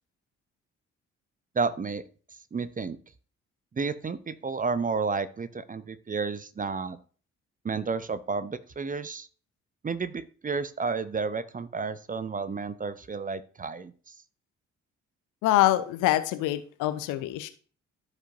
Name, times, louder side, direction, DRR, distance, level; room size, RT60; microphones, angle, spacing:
voice 1, 1.5-2.0 2.5-3.0 3.7-7.0 7.6-9.3 9.8-14.2, right 4 dB, 25° right, 14 dB, 0.7 m, -31 dB
voice 2, 15.4-17.5, left 14 dB, 60° left, 11 dB, 0.9 m, -25 dB
14.0 x 4.9 x 2.7 m, 0.41 s
figure-of-eight pair, 45°, 36 cm